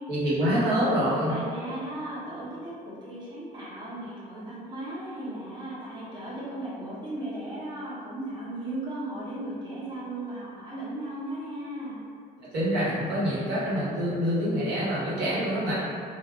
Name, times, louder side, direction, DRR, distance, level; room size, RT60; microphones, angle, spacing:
voice 1, 0.1-1.4 12.5-15.7, equal, 75° right, -9 dB, 1.1 m, -26 dB
voice 2, 1.3-12.0, right 1 dB, 25° right, -8 dB, 0.7 m, -36 dB
2.3 x 2.1 x 3.5 m, 2.3 s
cardioid pair, 110°, 17 cm